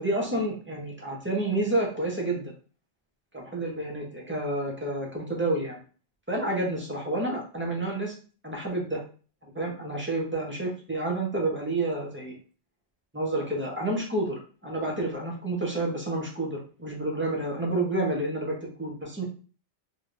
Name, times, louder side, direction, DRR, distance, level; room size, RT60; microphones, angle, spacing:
voice 1, 0.0-2.5 3.3-5.8 6.3-8.1 8.4-9.0 9.5-12.3 13.1-19.2, right 2 dB, 10° right, -2 dB, 0.7 m, -29 dB
3.2 x 3.0 x 2.5 m, 0.37 s
omnidirectional pair, 1.2 m